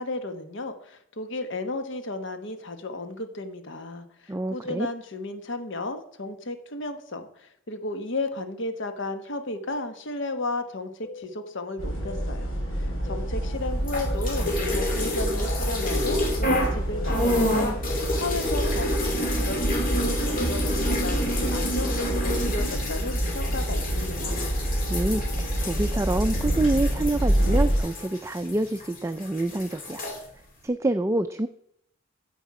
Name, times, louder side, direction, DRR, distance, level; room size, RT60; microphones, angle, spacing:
voice 1, 0.0-12.5 12.8-17.9 18.2-24.4, left 2 dB, 65° left, 8 dB, 1.3 m, -33 dB
voice 2, 4.3-4.9 24.9-30.1 30.6-31.5, right 2 dB, 15° right, 9 dB, 0.4 m, -27 dB
sound 1, 11.0-11.2 12.0-12.3 13.1-13.3 14.1-14.3 14.5-14.7 15.0-15.2 15.5-15.7 16.0-16.2 16.4-16.6 16.9-17.1 17.4-17.6 17.9-18.1 18.3-22.6, left 4 dB, 5° left, 1.5 m, -41 dB
sound 2, 11.8-27.8, right 1 dB, 90° left, 4.4 m, -27 dB
sound 3, 13.8-16.7 17.0-28.9 29.2-30.2, left 1 dB, 45° left, 2.7 m, -29 dB
9.9 x 8.0 x 4.8 m, 0.71 s
head